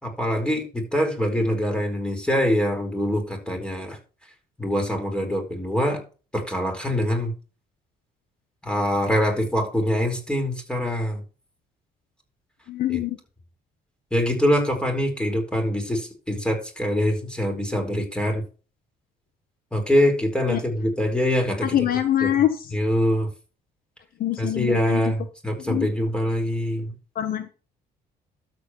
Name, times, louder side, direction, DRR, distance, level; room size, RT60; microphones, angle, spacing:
voice 1, 0.0-4.0 4.6-6.0 6.3-7.3 8.6-11.2 12.9-13.0 14.1-18.4 19.7-21.8 22.2-22.3 22.7-23.3 24.4-26.9, equal, 5° left, 3 dB, 4.7 m, -24 dB
voice 2, 12.7-13.2 20.5-20.6 21.6-22.7 24.2-25.1 25.6-25.9 27.1-27.5, left 11 dB, 60° left, 9 dB, 1.3 m, -24 dB
12.5 x 8.1 x 3.2 m, 0.34 s
cardioid pair, 110°, 17 cm